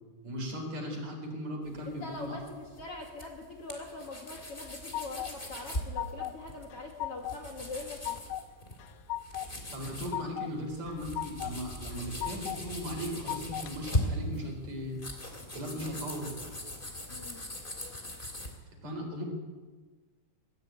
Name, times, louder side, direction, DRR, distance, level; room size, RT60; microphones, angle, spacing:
voice 1, 0.2-2.4 9.7-15.0 15.5-16.3 18.8-19.2, equal, 50° right, 3 dB, 5.5 m, -37 dB
sound 1, 1.7-18.5, left 1 dB, 15° left, 2.9 m, -40 dB
voice 2, 1.9-8.2 17.1-17.4, left 2 dB, 45° left, 1 dB, 2.6 m, -43 dB
sound 2, 4.3-5.3 5.7-6.4 6.7-7.4 7.7-8.5 8.8-9.5 9.8-10.5 10.9-11.6 11.9-12.6 13.0-13.7, left 13 dB, 90° left, 2.6 m, -37 dB
22.5 x 15.5 x 9.4 m, 1.4 s
omnidirectional pair, 4.1 m